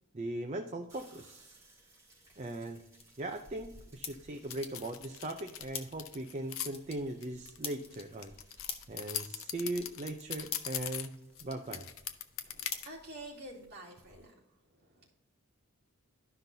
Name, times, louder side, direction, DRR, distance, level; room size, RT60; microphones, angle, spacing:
voice 1, 0.1-1.5 2.4-2.8 3.2-8.3 8.9-11.1 11.4-11.8, right 1 dB, 30° right, 4 dB, 0.5 m, -39 dB
sound 1, 0.9-14.3, right 1 dB, 15° right, 3.0 m, -62 dB
sound 2, 2.2-13.7, left 6 dB, 25° left, 0.7 m, -49 dB
sound 3, 4.5-6.7 7.2-11.4 11.7-12.9, left 10 dB, 70° left, 0.6 m, -40 dB
voice 2, 12.4-14.4 14.7-15.1, right 1 dB, 50° right, -5 dB, 2.4 m, -49 dB
12.0 x 5.7 x 2.7 m, 0.83 s
head